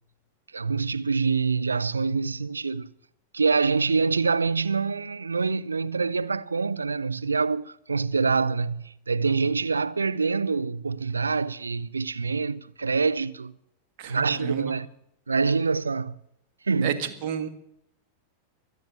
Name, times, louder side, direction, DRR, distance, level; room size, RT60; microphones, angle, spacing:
voice 1, 0.5-2.9 3.3-13.5 14.1-14.9 15.3-16.1 16.7-17.0, right 4 dB, 75° right, 0.5 m, -25 dB
voice 2, 14.0-14.7 16.8-17.5, right 8 dB, 50° right, 1.7 m, -30 dB
23.5 x 8.1 x 7.2 m
figure-of-eight pair, 90°, 0 cm